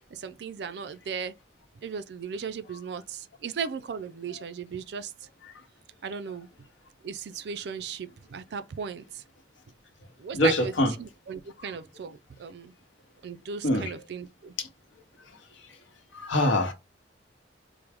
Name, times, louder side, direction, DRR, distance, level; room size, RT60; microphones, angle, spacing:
voice 1, 0.1-1.3 1.8-5.3 6.0-6.5 7.0-9.2 10.2-10.7 11.0-12.7 13.2-14.6, right 6 dB, 65° right, 0.4 m, -36 dB
voice 2, 10.3-10.9 11.6-11.7 13.6-13.9 14.6-14.7 16.1-16.7, left 1 dB, 90° left, 0.9 m, -24 dB
4.5 x 2.0 x 3.4 m
head